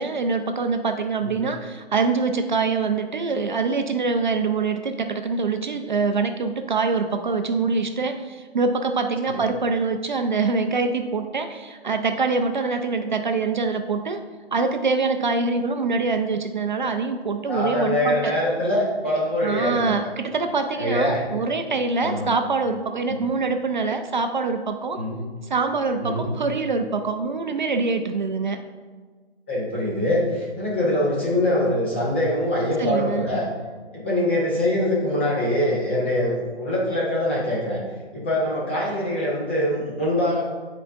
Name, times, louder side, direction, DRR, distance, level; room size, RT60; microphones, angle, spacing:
voice 1, 0.0-14.2 14.5-18.4 19.4-25.0 25.4-28.6 32.8-33.3, right 4 dB, 45° right, 7 dB, 0.4 m, -24 dB
voice 2, 17.5-19.9 20.7-21.2 22.0-22.3 23.1-23.2 24.9-25.2 26.0-26.3 29.5-33.5 33.9-37.8 38.1-40.4, left 1 dB, 10° left, -6 dB, 0.5 m, -23 dB
9.7 x 4.6 x 2.5 m, 1.5 s
hypercardioid pair, 155°, 34 cm